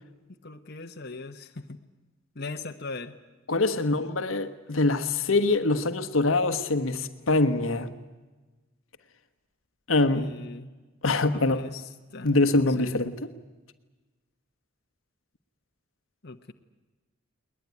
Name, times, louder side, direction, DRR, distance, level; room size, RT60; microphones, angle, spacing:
voice 1, 0.4-1.8 2.3-3.2 10.1-10.7 11.3-11.8 12.1-12.9 16.2-16.5, left 3 dB, 55° left, 1.2 m, -40 dB
voice 2, 3.5-7.9 9.9-10.3 11.0-11.6 12.2-13.3, left 2 dB, 80° left, 1.4 m, -24 dB
21.0 x 20.5 x 9.7 m
head